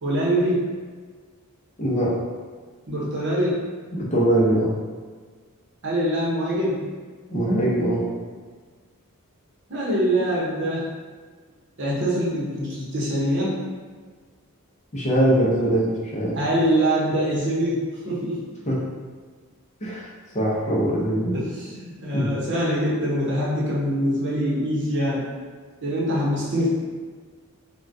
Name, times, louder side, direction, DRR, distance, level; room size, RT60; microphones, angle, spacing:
voice 1, 0.0-0.6 2.9-3.6 5.8-6.9 9.7-10.8 11.8-13.5 16.3-18.4 21.3-25.2 25.8-26.7, equal, 55° right, -6 dB, 0.8 m, -24 dB
voice 2, 1.8-2.1 3.9-4.7 7.3-8.1 14.9-16.4 18.7-18.8 19.8-20.1 20.3-21.3 22.1-22.3, right 1 dB, 30° left, -6 dB, 0.6 m, -22 dB
3.5 x 2.2 x 2.6 m, 1.5 s
head